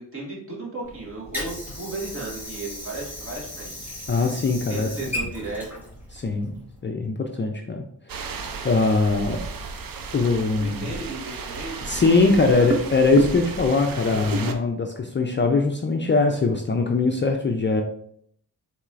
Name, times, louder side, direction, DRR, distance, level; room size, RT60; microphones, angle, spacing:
voice 1, 0.0-3.9 4.7-5.8 10.6-12.1 12.6-12.8, right 2 dB, 35° right, -3 dB, 1.7 m, -35 dB
Water / Sink (filling or washing), 0.8-6.8, left 1 dB, 5° right, 1.8 m, -36 dB
voice 2, 4.1-5.0 6.1-6.6 6.8-7.8 8.6-9.4 10.1-10.9 11.9-17.8, left 3 dB, 30° left, 3 dB, 0.4 m, -21 dB
sound 1, 8.1-14.5, right 4 dB, 60° right, 0.6 m, -32 dB
4.3 x 4.0 x 2.4 m, 0.67 s
cardioid pair, 85°, 39 cm